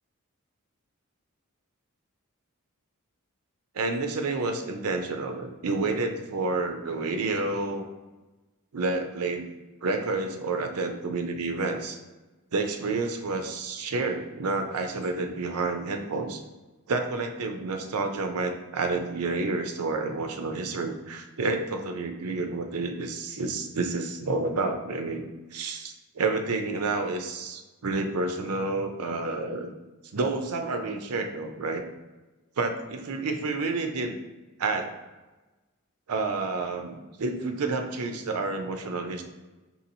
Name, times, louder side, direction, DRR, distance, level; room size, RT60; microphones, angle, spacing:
voice 1, 3.7-7.8 8.7-9.5 9.8-12.0 12.5-16.4 16.9-25.2 25.5-29.7 30.1-31.8 32.6-34.2 34.6-34.9 36.1-39.2, right 3 dB, 90° right, 5 dB, 0.5 m, -29 dB
5.8 x 2.8 x 2.7 m, 1.1 s
head